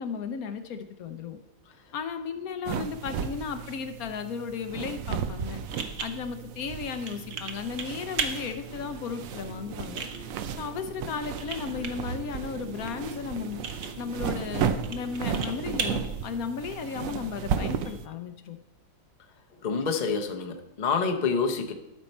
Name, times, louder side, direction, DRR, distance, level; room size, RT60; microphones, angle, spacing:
voice 1, 0.0-1.4 1.9-5.6 6.0-10.1 10.6-13.6 14.0-18.6, left 6 dB, 70° left, 8 dB, 0.9 m, -35 dB
sound 1, 1.6-18.0, right 4 dB, 35° right, 1.3 m, -48 dB
sound 2, 2.6-18.1, right 7 dB, 85° right, 0.7 m, -34 dB
sound 3, 5.7-17.1, right 5 dB, 50° right, 1.0 m, -39 dB
voice 2, 19.6-21.7, left 5 dB, 50° left, 3 dB, 0.5 m, -27 dB
12.5 x 5.4 x 4.3 m, 0.93 s
omnidirectional pair, 2.1 m